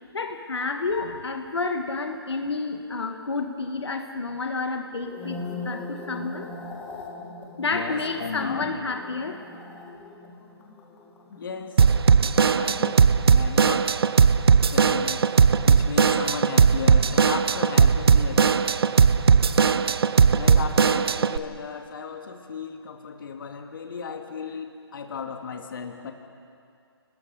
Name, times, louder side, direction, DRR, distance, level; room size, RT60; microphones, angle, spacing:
voice 1, 0.1-5.4 5.6-6.5 7.6-9.4, left 3 dB, 80° left, 4 dB, 1.9 m, -30 dB
sound 1, 4.9-13.4 13.6-14.0, left 2 dB, 10° left, 2.1 m, -40 dB
voice 2, 7.7-8.7 11.3-11.8 12.5-13.9 14.7-15.3 15.6-18.5 20.3-26.1, left 6 dB, 55° left, 4 dB, 2.1 m, -35 dB
Drum kit / Drum, 11.8-21.4, right 6 dB, 65° right, 0.8 m, -18 dB
29.0 x 20.5 x 5.6 m, 2.5 s
hypercardioid pair, 150°, 14 cm